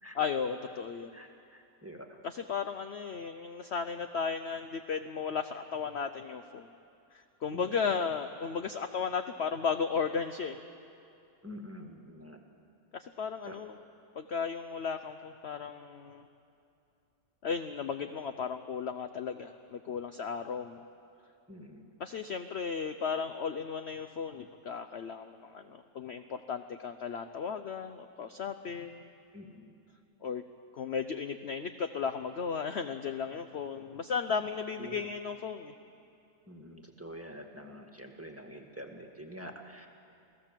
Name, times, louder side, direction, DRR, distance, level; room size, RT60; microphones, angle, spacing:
voice 1, 0.1-1.2 2.2-6.7 7.1-10.6 12.9-13.8 14.1-16.3 17.4-20.8 22.0-29.1 30.2-30.4 30.7-35.7, left 6 dB, 55° left, 8 dB, 0.7 m, -35 dB
voice 2, 1.1-2.1 7.5-7.7 11.4-12.4 13.5-13.6 21.5-21.9 29.3-29.7 34.8-35.1 36.5-39.9, equal, 10° right, 3 dB, 1.6 m, -46 dB
28.0 x 17.0 x 7.5 m, 2.7 s
omnidirectional pair, 1.9 m